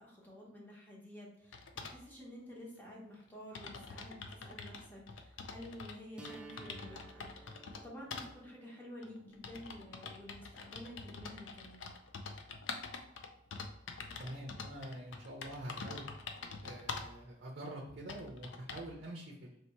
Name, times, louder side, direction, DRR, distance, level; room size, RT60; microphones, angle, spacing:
voice 1, 0.0-11.9, left 1 dB, 10° left, -4 dB, 1.0 m, -51 dB
sound 1, 1.5-2.0 2.9-3.0 3.2-3.3 3.5-6.0 6.2-7.8 8.1-8.3 9.0-17.2 17.7-17.8 18.1-18.9, left 4 dB, 75° left, 0.5 m, -46 dB
sound 2, 6.2-12.1, right 2 dB, 5° right, 0.3 m, -57 dB
voice 2, 14.2-16.1 16.6-19.6, right 1 dB, 55° right, -1 dB, 0.6 m, -46 dB
3.2 x 2.9 x 4.4 m, 0.78 s
head